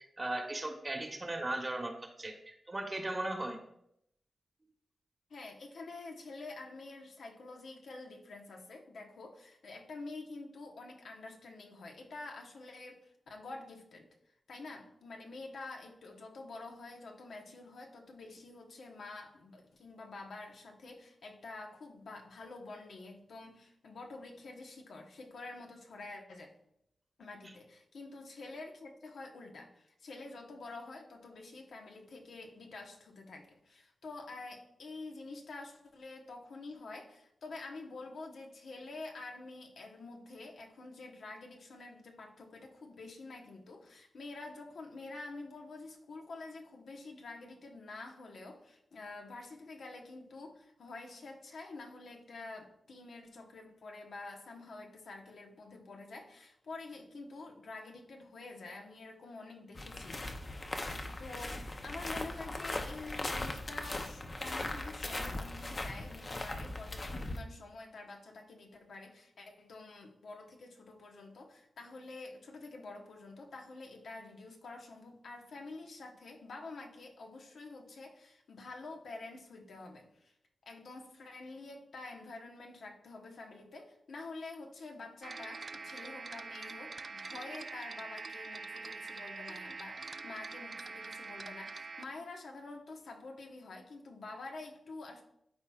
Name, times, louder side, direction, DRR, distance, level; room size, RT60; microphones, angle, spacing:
voice 1, 0.2-3.6, right 2 dB, 30° right, 3 dB, 1.1 m, -37 dB
voice 2, 5.3-14.1 14.5-26.5 27.2-60.2 61.1-80.3 80.7-95.2, left 3 dB, 80° left, 2 dB, 1.1 m, -48 dB
sound 1, 59.7-67.4, left 2 dB, 35° left, 0.7 m, -39 dB
sound 2, 85.2-92.0, right 4 dB, 45° right, 0.4 m, -44 dB
12.5 x 4.3 x 2.4 m, 0.77 s
wide cardioid pair, 85°, 0 cm